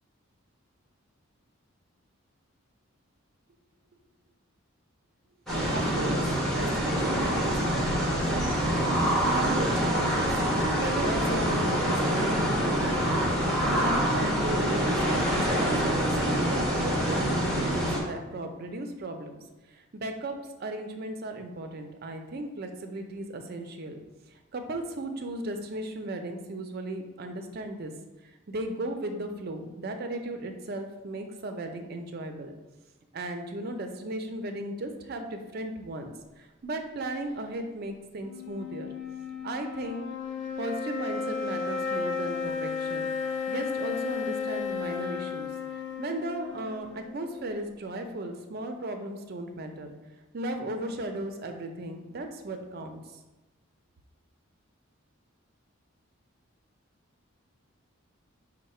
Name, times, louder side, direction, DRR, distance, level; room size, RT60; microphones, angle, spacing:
sound 1, 5.5-18.0, equal, ahead, 0.8 m, -26 dB
voice 1, 5.7-10.3 10.5-13.3 13.7-19.4 19.7-24.0 24.3-27.9 28.2-32.5 33.1-38.9 39.4-40.1 40.6-43.1 43.5-45.5 46.0-49.9 50.3-53.0, right 1 dB, 45° right, 5 dB, 0.4 m, -36 dB
sound 2, 38.2-47.7, left 5 dB, 60° left, 0.6 m, -34 dB
5.4 x 2.1 x 4.2 m, 1.1 s
head